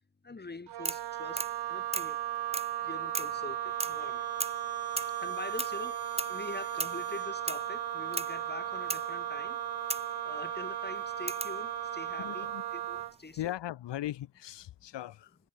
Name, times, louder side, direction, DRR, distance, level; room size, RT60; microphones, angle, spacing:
voice 1, 0.2-2.2 2.8-4.3 5.2-9.6 10.2-13.4, left 3 dB, 25° left, 2.5 m, -44 dB
Wind instrument woodwind instrument, 0.7-13.2, right 13 dB, 75° right, 1.3 m, -36 dB
sound 1, 0.8-1.1 1.4-1.6 1.9-2.2 2.5-2.8 3.1-3.4 3.8-4.1 4.4-4.6 5.0-5.2 5.6-5.8 6.2-6.4 6.8-7.0 7.5-7.7 8.1-8.4 8.9-9.1 9.9-10.1 11.3-11.6 12.7-13.2, right 3 dB, 15° right, 1.0 m, -36 dB
sound 2, 2.4-12.8, left 8 dB, 60° left, 6.0 m, -50 dB
voice 2, 12.2-12.6 13.4-15.4, left 13 dB, 85° left, 3.5 m, -38 dB
cardioid pair, 70°, 41 cm